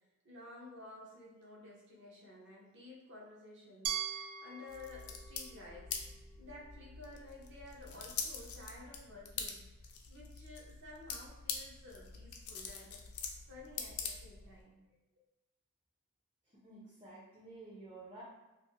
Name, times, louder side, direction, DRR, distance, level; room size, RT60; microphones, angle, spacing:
voice 1, 0.2-3.9 4.4-5.9 6.4-9.7 10.1-13.0 13.5-14.8, left 2 dB, 55° right, -3 dB, 0.7 m, -53 dB
Glass, 3.8-6.8, right 9 dB, 90° right, 0.3 m, -42 dB
sound 1, 4.7-14.6, left 6 dB, 70° left, 0.4 m, -45 dB
voice 2, 16.5-18.2, right 2 dB, 20° right, -7 dB, 0.5 m, -52 dB
2.4 x 2.4 x 2.9 m, 1.0 s
head